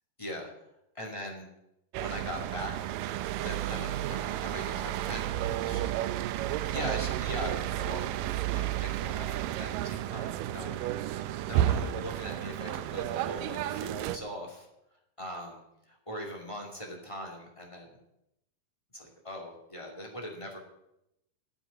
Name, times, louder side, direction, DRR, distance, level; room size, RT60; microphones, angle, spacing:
voice 1, 0.2-0.5 0.9-1.5 2.0-2.9 3.4-5.9 6.7-14.7 15.2-15.6 15.9-18.0 18.9-20.6, equal, 10° left, 1 dB, 1.9 m, -41 dB
sound 1, 1.9-14.2, right 13 dB, 80° right, 2.2 m, -32 dB
9.4 x 8.5 x 9.8 m, 0.83 s
omnidirectional pair, 4.0 m